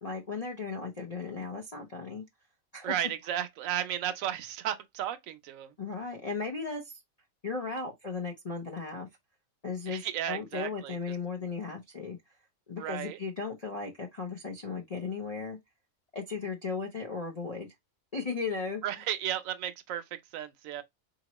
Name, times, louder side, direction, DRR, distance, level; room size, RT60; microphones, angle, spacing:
voice 1, 0.0-2.2 2.7-3.1 5.8-7.0 7.4-9.1 9.6-12.2 12.7-15.6 16.1-17.7 18.1-18.8, left 4 dB, 40° left, 0.6 m, -36 dB
voice 2, 2.8-5.7 9.9-11.0 12.8-13.2 18.8-20.8, right 11 dB, 70° right, 1.0 m, -34 dB
4.1 x 2.9 x 2.9 m
omnidirectional pair, 1.6 m